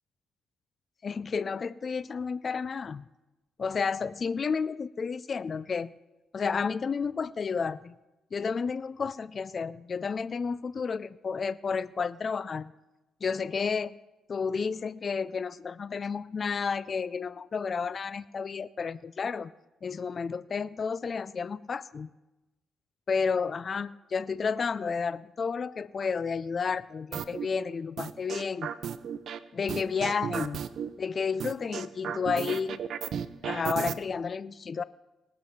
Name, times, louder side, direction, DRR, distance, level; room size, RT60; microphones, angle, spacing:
voice 1, 1.0-3.0 3.6-5.9 6.3-7.9 8.3-12.7 13.2-14.0 14.3-19.5 19.8-22.1 23.1-28.7 29.5-30.6 31.0-32.8 33.4-34.8, left 5 dB, 40° left, 17 dB, 0.3 m, -31 dB
sound 1, 27.1-27.5 28.0-29.4 29.7-30.9 31.4-33.9, right 8 dB, 65° right, 0.7 m, -34 dB
19.0 x 7.5 x 5.7 m, 1.0 s
cardioid pair, 90°, 0 cm